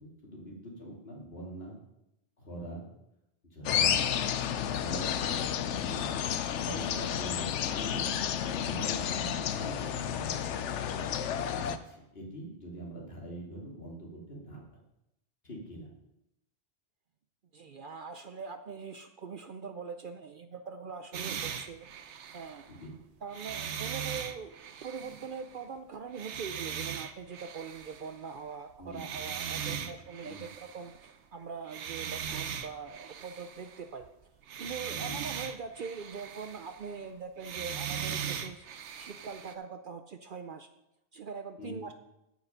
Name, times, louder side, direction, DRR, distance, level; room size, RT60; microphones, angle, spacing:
voice 1, 0.0-1.8 2.4-2.9 3.5-4.2 4.7-6.1 6.5-8.1 8.5-14.6 15.4-15.9 22.7-23.0 28.8-29.0 29.6-29.9 30.3-30.5 34.9-35.2 41.6-41.8, right 1 dB, 60° left, -2 dB, 2.8 m, -44 dB
sound 1, 3.6-11.8, left 9 dB, 80° left, 0.9 m, -31 dB
voice 2, 17.5-21.9 22.3-22.7 23.2-34.0 34.6-38.7 39.0-40.7 41.1-41.9, right 5 dB, 55° right, 8 dB, 0.7 m, -42 dB
sound 2, 21.1-22.9 23.3-25.7 26.1-28.5 28.8-31.1 31.7-34.1 34.4-37.1 37.4-39.5, right 8 dB, 75° right, 1.0 m, -39 dB
8.7 x 8.3 x 5.6 m, 0.86 s
omnidirectional pair, 1.2 m